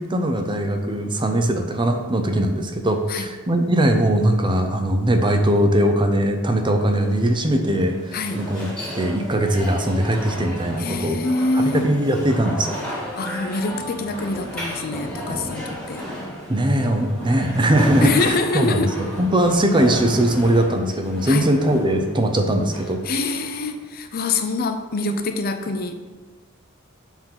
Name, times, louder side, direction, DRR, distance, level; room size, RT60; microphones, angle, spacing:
voice 1, 0.0-8.7 8.9-11.2 11.5-12.8 16.5-23.0, right 1 dB, 20° right, 5 dB, 0.6 m, -20 dB
sound 1, 6.8-23.8, equal, 5° left, 1.7 m, -33 dB
voice 2, 10.8-11.9 13.2-16.1 18.0-18.9 21.3-21.5 23.0-25.9, left 3 dB, 45° left, 7 dB, 0.6 m, -25 dB
7.2 x 3.8 x 5.7 m, 1.4 s
head